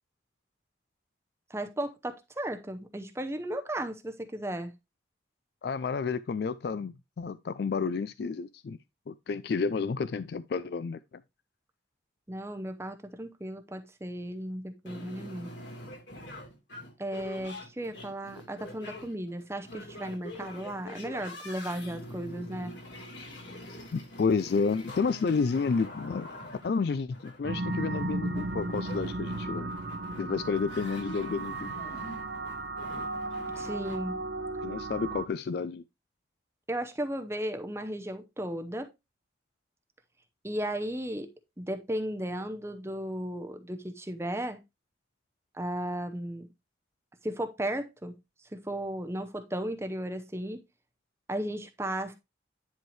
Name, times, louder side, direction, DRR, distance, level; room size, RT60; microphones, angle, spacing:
voice 1, 1.5-4.7 12.3-15.5 17.0-22.7 33.6-34.2 36.7-38.9 40.4-41.3 41.6-44.6 45.5-46.5 47.2-48.1 48.5-50.6 51.3-52.1, right 1 dB, 15° right, 0.6 m, -35 dB
voice 2, 5.6-8.8 9.1-11.0 23.9-26.3 26.6-29.7 30.2-31.7 34.6-35.8, left 5 dB, 55° left, 0.3 m, -30 dB
sound 1, 14.9-34.0, left 1 dB, 70° left, 3.4 m, -45 dB
sound 2, 27.4-35.3, right 2 dB, 60° right, 0.8 m, -35 dB
10.5 x 4.6 x 3.2 m
head